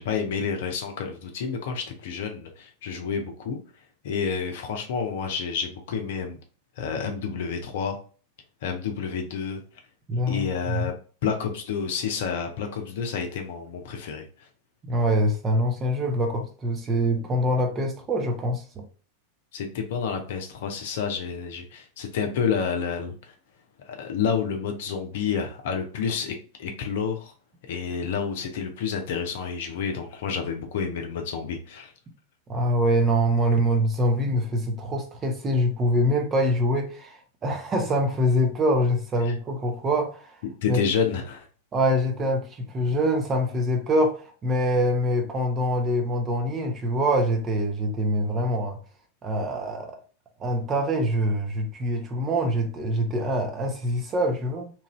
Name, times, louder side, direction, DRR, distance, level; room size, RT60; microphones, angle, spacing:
voice 1, 0.0-3.6 4.0-6.4 6.8-8.0 8.6-9.6 10.3-11.0 11.2-14.2 19.5-23.3 23.9-26.3 26.6-27.3 27.7-31.9 39.3-39.4 40.6-41.5, left 6 dB, 55° left, 0.7 m, -29 dB
voice 2, 10.1-10.9 14.8-18.8 32.5-40.3 40.7-40.8 41.7-48.8 49.2-50.0 50.4-54.7, equal, 25° right, 0.8 m, -24 dB
3.0 x 2.6 x 3.0 m
figure-of-eight pair, 90°, 0 cm